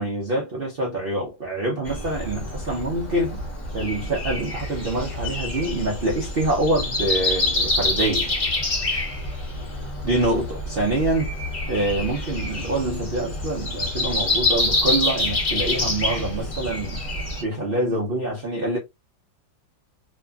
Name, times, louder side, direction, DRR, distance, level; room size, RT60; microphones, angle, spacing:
voice 1, 0.0-3.4 3.7-8.3 10.0-11.4 11.7-17.0 17.4-18.8, right 1 dB, 70° right, 0.5 m, -25 dB
Breathing, 1.8-17.4, left 2 dB, 25° left, 0.8 m, -27 dB
2.9 x 2.6 x 2.3 m
omnidirectional pair, 2.0 m